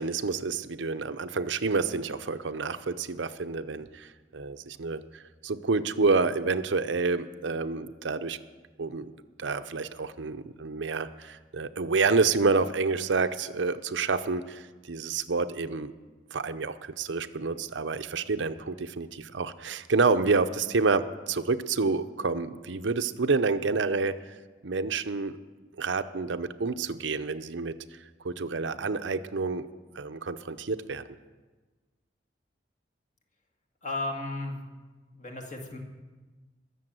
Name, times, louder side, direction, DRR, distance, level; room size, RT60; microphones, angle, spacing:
voice 1, 0.0-8.4 8.8-9.1 9.4-15.9 16.3-24.2 24.6-25.4 25.8-27.7 28.2-29.7 29.9-31.0, right 4 dB, 85° right, 11 dB, 0.7 m, -28 dB
voice 2, 33.8-34.6 35.1-35.8, left 2 dB, 40° left, 1 dB, 2.1 m, -34 dB
20.5 x 7.0 x 7.6 m, 1.3 s
head